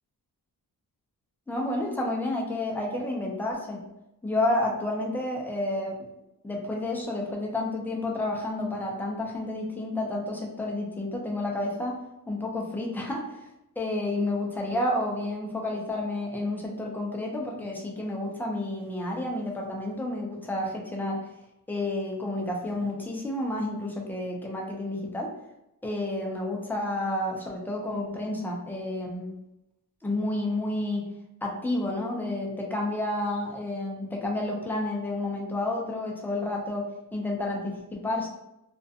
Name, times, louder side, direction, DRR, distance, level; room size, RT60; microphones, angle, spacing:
voice 1, 1.5-3.8 4.2-6.1 6.4-11.9 12.3-13.4 13.8-21.2 21.7-25.3 25.8-29.3 30.0-31.1 31.4-38.3, left 1 dB, 5° left, -1 dB, 0.4 m, -30 dB
2.4 x 2.2 x 2.6 m, 0.90 s
wide cardioid pair, 130°, 38 cm